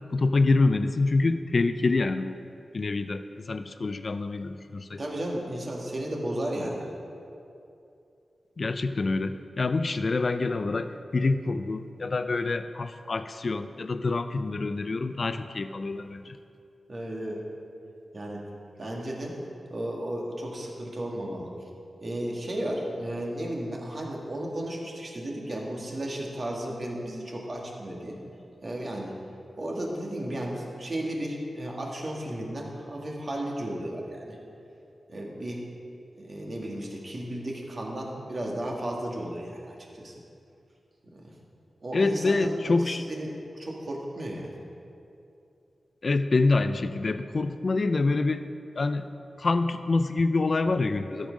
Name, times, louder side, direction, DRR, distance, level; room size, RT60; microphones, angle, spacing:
voice 1, 0.1-2.4 2.7-5.0 8.6-16.4 41.9-43.0 46.0-48.4 48.8-49.1 49.4-51.3, left 3 dB, 55° left, 10 dB, 0.4 m, -26 dB
voice 2, 5.0-6.8 16.9-17.4 18.1-18.4 18.8-19.4 19.7-21.5 22.0-28.2 28.6-29.1 29.6-34.4 35.1-35.6 36.2-40.1 41.1-41.3 41.8-44.5, right 1 dB, 50° right, -2 dB, 1.8 m, -34 dB
13.5 x 5.5 x 5.2 m, 2.6 s
wide cardioid pair, 75°, 0 cm